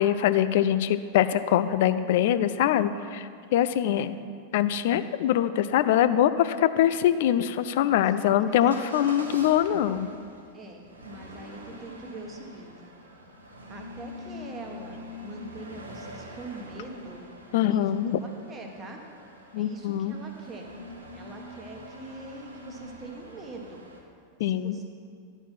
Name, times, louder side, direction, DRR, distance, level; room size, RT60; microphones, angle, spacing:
voice 1, 0.0-4.2 4.5-10.1 17.5-18.2 19.5-20.1 24.4-24.8, left 11 dB, 50° left, 12 dB, 0.3 m, -23 dB
voice 2, 7.8-9.1 10.5-12.9 13.7-17.2 17.6-17.9 18.2-19.0 19.5-20.7 21.1-23.8 24.4-24.8, right 2 dB, 20° right, 2 dB, 1.1 m, -43 dB
Motor vehicle (road) / Engine starting / Accelerating revving vroom, 8.7-24.0, left 1 dB, 75° right, 1.0 m, -44 dB
11.0 x 4.4 x 6.0 m, 2.3 s
figure-of-eight pair, 90°, 0 cm